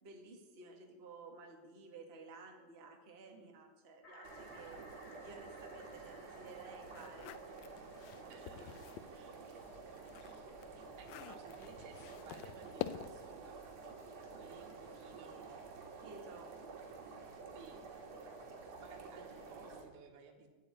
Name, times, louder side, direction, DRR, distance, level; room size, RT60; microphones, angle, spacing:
voice 1, 0.0-4.8 5.2-7.4 16.0-16.5, right 3 dB, 25° right, 1 dB, 1.5 m, -54 dB
sound 1, 4.0-9.7, left 2 dB, 30° left, 1.8 m, -61 dB
sound 2, 4.2-19.8, right 4 dB, 60° right, 3.1 m, -51 dB
sound 3, 6.9-9.1 9.5-13.3, left 12 dB, 80° left, 1.6 m, -47 dB
voice 2, 8.2-13.6 14.1-15.9 17.5-17.8 18.5-20.5, right 6 dB, 80° right, 2 dB, 2.9 m, -59 dB
11.5 x 8.5 x 8.7 m, 1.2 s
omnidirectional pair, 3.5 m